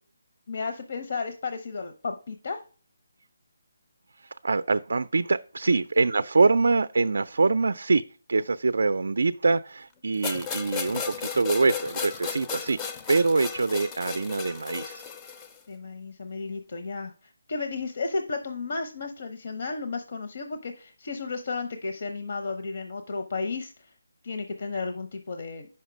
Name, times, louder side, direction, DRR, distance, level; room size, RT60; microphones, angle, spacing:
voice 1, 0.5-2.6 5.7-5.8 15.7-23.9 24.2-25.7, left 4 dB, 55° left, 0.7 m, -33 dB
voice 2, 4.4-8.0 8.3-15.0, right 3 dB, 75° right, 0.3 m, -24 dB
sound 1, 10.2-15.6, left 6 dB, 15° left, 0.4 m, -35 dB
6.4 x 5.7 x 5.0 m
hypercardioid pair, 165°, 0 cm